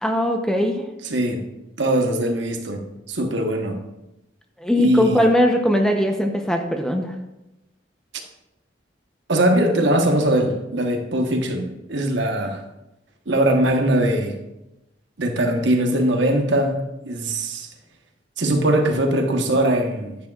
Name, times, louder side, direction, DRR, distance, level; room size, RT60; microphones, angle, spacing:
voice 1, 0.0-0.9 4.6-7.1, left 1 dB, 5° left, 3 dB, 0.7 m, -20 dB
voice 2, 1.1-1.4 1.8-2.8 3.1-3.8 4.8-5.3 9.3-12.6 13.3-14.3 15.2-17.7 18.4-20.2, right 1 dB, 70° right, 4 dB, 1.2 m, -21 dB
10.5 x 9.4 x 2.4 m, 0.93 s
head